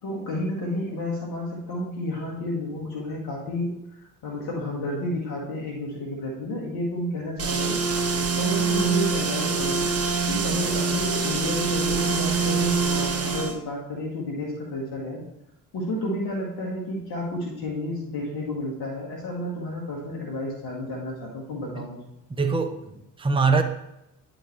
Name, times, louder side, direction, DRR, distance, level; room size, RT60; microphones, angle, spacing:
voice 1, 0.0-8.0 8.4-9.9 10.3-15.2 15.7-22.0, left 1 dB, 65° left, -3 dB, 1.7 m, -31 dB
sound 1, 7.4-13.6, right 4 dB, 35° right, 1.1 m, -24 dB
voice 2, 22.3-23.6, right 4 dB, 15° right, 5 dB, 0.8 m, -23 dB
9.8 x 3.9 x 3.2 m, 0.87 s
hypercardioid pair, 50°, 40 cm